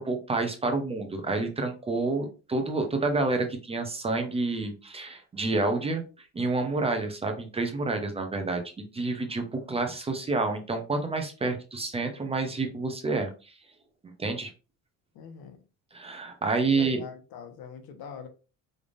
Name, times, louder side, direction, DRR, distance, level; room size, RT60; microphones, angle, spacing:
voice 1, 0.0-6.0 6.3-8.6 8.9-13.5 14.2-14.5 15.9-17.0, right 3 dB, 15° right, 4 dB, 0.5 m, -29 dB
voice 2, 15.1-15.6 16.7-18.3, left 7 dB, 80° left, 6 dB, 1.2 m, -43 dB
5.0 x 3.4 x 2.5 m, 0.32 s
cardioid pair, 175°, 36 cm